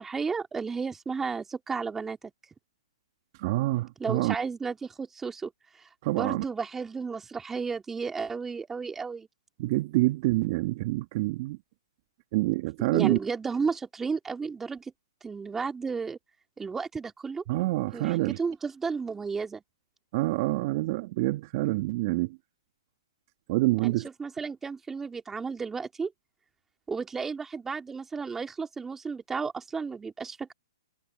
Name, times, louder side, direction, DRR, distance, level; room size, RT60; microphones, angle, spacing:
voice 1, 0.0-2.3 4.0-5.5 6.1-9.3 12.9-14.9 15.2-16.2 16.6-17.4 17.9-19.6 23.8-26.1 26.9-30.5, right 5 dB, 10° right, 3.1 m, -33 dB
voice 2, 3.4-4.3 6.0-6.4 9.6-11.6 12.3-13.2 17.5-18.4 20.1-22.4 23.5-24.1, right 20 dB, 45° right, 1.8 m, -27 dB
hypercardioid pair, 130°, 3 cm